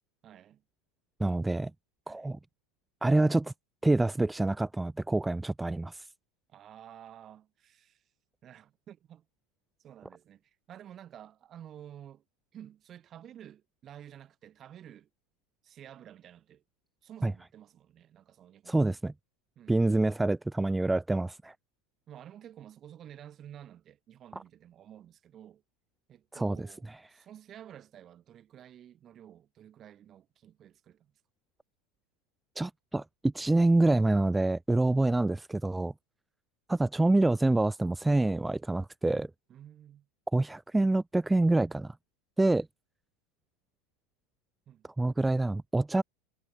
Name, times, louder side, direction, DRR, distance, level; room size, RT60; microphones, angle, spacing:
voice 1, 0.2-0.6 2.1-2.3 6.5-8.0 8.4-9.3 9.8-12.2 12.5-15.1 15.6-16.6 17.0-19.0 19.6-19.8 22.1-25.6 26.1-31.1 34.8-35.1 39.5-40.1 44.7-44.9, right 10 dB, 35° right, 6.6 m, -51 dB
voice 2, 1.2-1.7 2.1-2.4 3.0-3.5 3.8-6.1 17.2-17.3 18.7-19.1 19.7-21.5 26.3-26.7 32.6-35.9 36.7-39.3 40.3-41.9 42.4-42.7 45.0-46.0, right 2 dB, 10° right, 0.7 m, -26 dB
hypercardioid pair, 90°, 0 cm